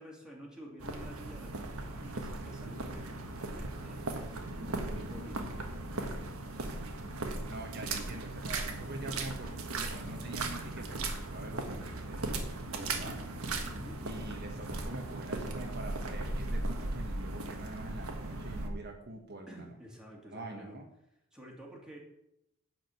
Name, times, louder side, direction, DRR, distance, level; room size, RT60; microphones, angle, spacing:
voice 1, 0.0-5.5 12.8-13.2 13.6-14.1 19.5-20.8 21.3-22.0, equal, 5° right, -2 dB, 2.6 m, -50 dB
sound 1, 0.8-18.7, right 2 dB, 80° right, 1.5 m, -37 dB
voice 2, 7.5-13.3 14.0-19.8 20.2-20.9, right 2 dB, 50° right, 2 dB, 1.3 m, -45 dB
10.5 x 5.1 x 8.0 m, 0.83 s
head